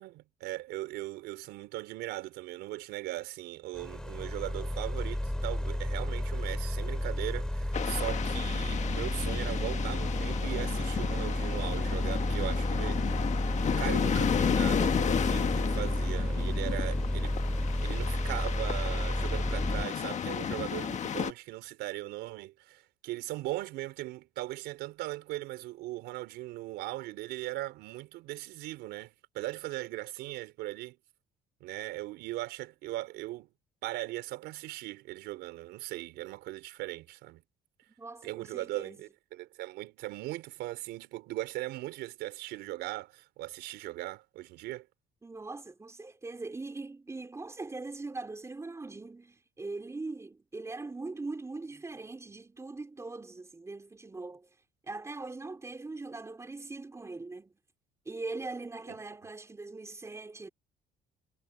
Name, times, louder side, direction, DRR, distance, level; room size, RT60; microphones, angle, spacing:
voice 1, 0.0-13.3 13.6-17.4 17.8-31.0 31.6-33.5 33.8-37.4 38.2-44.9 58.9-59.0, right 17 dB, 90° right, 4.3 m, -39 dB
sound 1, 3.7-19.9, left 1 dB, 5° left, 3.1 m, -31 dB
sound 2, 7.7-21.3, left 8 dB, 45° left, 1.6 m, -33 dB
voice 2, 37.9-39.0 45.2-54.5 54.8-57.5 58.1-60.5, right 3 dB, 15° right, 3.7 m, -41 dB
cardioid pair, 110°, 17 cm